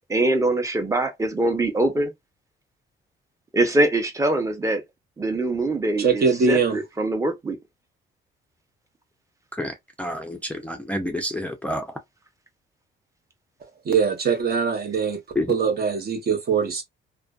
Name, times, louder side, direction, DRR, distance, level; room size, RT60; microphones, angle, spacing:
voice 1, 0.1-2.1 3.5-4.8 5.2-7.6, right 2 dB, 15° right, 0.8 m, -23 dB
voice 2, 6.0-6.8 13.9-15.2 15.5-16.8, right 5 dB, 50° right, 0.8 m, -22 dB
voice 3, 9.6-11.8 15.4-15.5, left 1 dB, 5° left, 0.4 m, -29 dB
2.4 x 2.2 x 2.3 m
cardioid pair, 90°, 20 cm